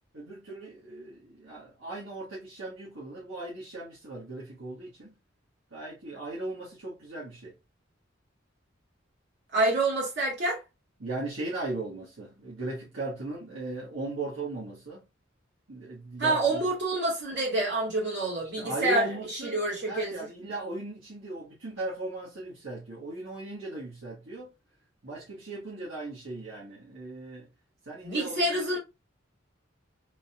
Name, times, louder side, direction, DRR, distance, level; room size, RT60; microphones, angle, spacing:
voice 1, 0.1-5.2 5.7-7.5 11.0-15.1 15.7-16.7 18.4-24.5 25.0-27.5 27.8-28.6, right 2 dB, 75° right, 1.6 m, -37 dB
voice 2, 9.5-10.6 16.2-20.1 28.0-28.8, right 2 dB, 60° right, 2.4 m, -27 dB
3.9 x 3.2 x 2.5 m
head